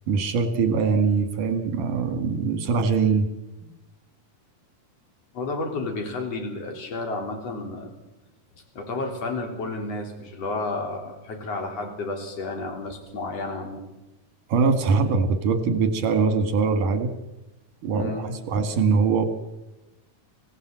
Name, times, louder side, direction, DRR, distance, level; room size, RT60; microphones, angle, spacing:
voice 1, 0.1-3.3 14.5-17.1 17.8-19.2, right 5 dB, 85° right, 9 dB, 3.6 m, -22 dB
voice 2, 5.3-7.9 8.7-13.8 17.9-18.3, left 3 dB, 50° left, 3 dB, 4.5 m, -31 dB
26.5 x 17.0 x 7.8 m, 0.97 s
omnidirectional pair, 3.6 m